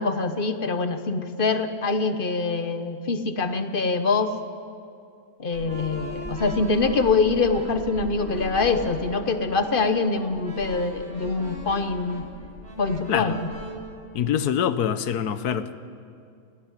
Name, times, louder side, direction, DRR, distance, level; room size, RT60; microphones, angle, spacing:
voice 1, 0.0-4.3 5.4-12.2 12.8-13.5, left 4 dB, 40° left, 9 dB, 0.9 m, -24 dB
sound 1, 5.5-13.7, right 1 dB, 30° right, 4.2 m, -38 dB
voice 2, 14.1-15.8, left 9 dB, 65° left, 12 dB, 1.2 m, -25 dB
18.0 x 16.5 x 9.9 m, 2.3 s
omnidirectional pair, 1.9 m